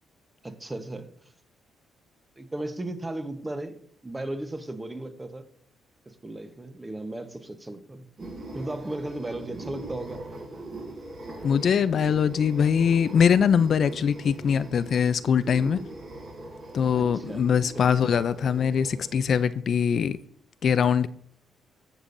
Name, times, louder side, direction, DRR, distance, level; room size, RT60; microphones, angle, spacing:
voice 1, 0.4-1.1 2.4-3.8 4.0-5.5 6.1-8.1 8.5-10.2 16.9-17.4, right 2 dB, 15° right, 1.0 m, -35 dB
sound 1, 8.2-19.5, right 2 dB, 50° right, 4.2 m, -41 dB
voice 2, 11.4-15.8 16.7-20.2 20.6-21.1, left 7 dB, 55° left, 0.4 m, -22 dB
14.5 x 6.8 x 2.6 m
cardioid pair, 90°, 0 cm